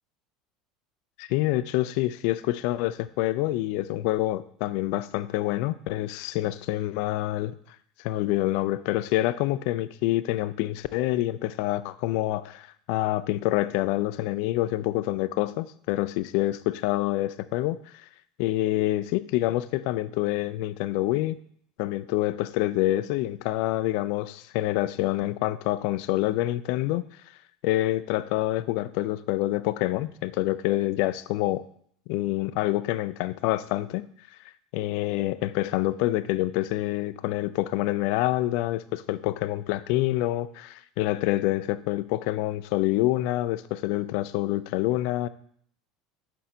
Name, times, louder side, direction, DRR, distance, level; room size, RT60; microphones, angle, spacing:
voice 1, 1.2-7.5 8.0-18.1 18.4-21.4 21.8-27.0 27.6-31.6 32.1-34.1 34.7-45.3, left 16 dB, 60° left, 14 dB, 0.3 m, -27 dB
6.0 x 4.6 x 3.9 m, 0.64 s
figure-of-eight pair, 75°, 0 cm